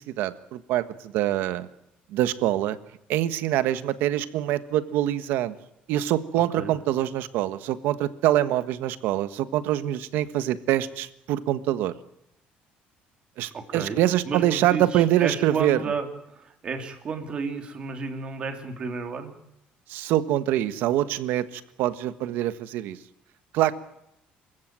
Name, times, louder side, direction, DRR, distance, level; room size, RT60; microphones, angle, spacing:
voice 1, 0.0-1.7 2.1-2.8 3.1-5.5 5.9-11.9 13.4-15.8 19.9-23.0 23.5-23.7, right 13 dB, 75° right, 12 dB, 1.5 m, -25 dB
voice 2, 13.5-14.0 14.3-19.3, right 4 dB, 30° right, 5 dB, 3.4 m, -32 dB
27.5 x 16.0 x 9.1 m, 0.79 s
cardioid pair, 165°, 3 cm